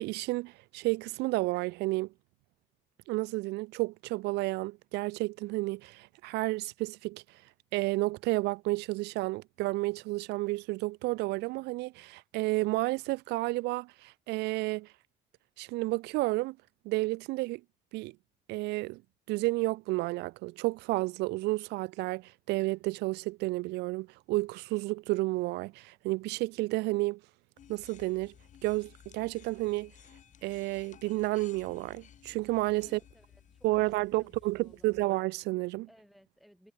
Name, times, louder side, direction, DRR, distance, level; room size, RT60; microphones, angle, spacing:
voice 1, 0.0-2.1 3.1-7.2 7.7-14.9 15.6-16.6 16.8-17.6 17.9-18.1 18.5-19.0 19.3-27.2 27.7-28.3 28.6-29.9 30.4-33.0 33.6-35.9, right 21 dB, 85° right, 0.4 m, -31 dB
sound 1, 27.6-35.1, left 9 dB, 45° left, 1.6 m, -57 dB
voice 2, 32.8-35.0 35.9-36.7, equal, ahead, 6.1 m, -61 dB
cardioid pair, 110°, 17 cm